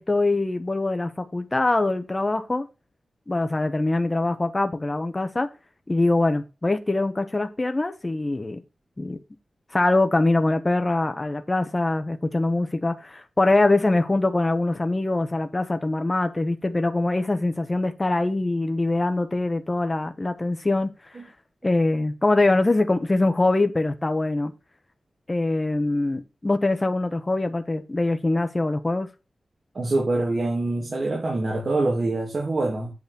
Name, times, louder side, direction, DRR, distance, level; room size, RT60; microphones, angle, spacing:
voice 1, 0.0-2.7 3.3-5.5 5.9-8.6 9.0-9.2 9.7-21.2 21.6-24.5 25.3-29.1, left 2 dB, 25° left, 0.9 m, -23 dB
voice 2, 29.7-32.9, right 2 dB, 50° right, 2.4 m, -25 dB
8.3 x 4.0 x 6.8 m
wide cardioid pair, 100°, 0 cm